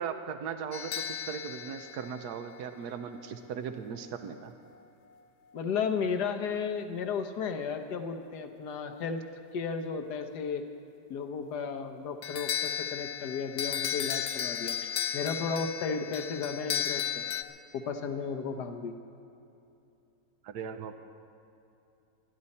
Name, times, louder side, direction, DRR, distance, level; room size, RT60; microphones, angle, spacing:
voice 1, 0.0-4.5 20.4-20.9, right 7 dB, 80° right, 8 dB, 1.3 m, -38 dB
sound 1, 0.7-3.0 12.2-17.4, left 9 dB, 65° left, 0.7 m, -34 dB
voice 2, 5.5-9.2 9.5-10.6 11.1-14.8 15.1-17.2 17.7-18.9, left 5 dB, 85° left, 6 dB, 1.5 m, -34 dB
21.0 x 13.0 x 4.2 m, 2.8 s
omnidirectional pair, 1.7 m